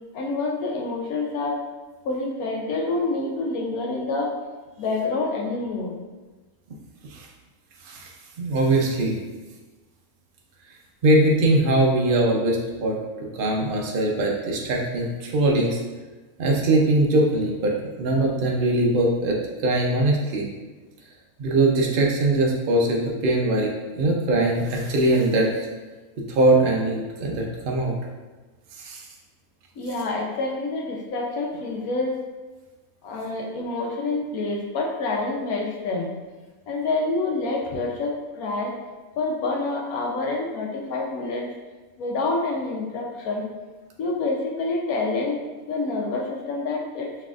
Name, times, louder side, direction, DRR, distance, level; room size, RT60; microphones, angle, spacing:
voice 1, 0.1-1.6 2.0-4.3 4.8-6.0 29.8-32.2 33.0-36.2 36.7-38.8 39.2-41.5 42.0-43.5 44.0-45.4 45.7-47.1, left 3 dB, 75° left, 0 dB, 1.2 m, -27 dB
voice 2, 8.4-9.2 11.0-13.0 13.3-15.8 16.4-17.7 18.0-19.4 19.6-20.5 21.4-23.7 24.0-25.5 26.3-27.9 28.8-29.0, right 2 dB, 50° right, -1 dB, 0.7 m, -21 dB
5.9 x 3.3 x 2.4 m, 1.2 s
omnidirectional pair, 1.5 m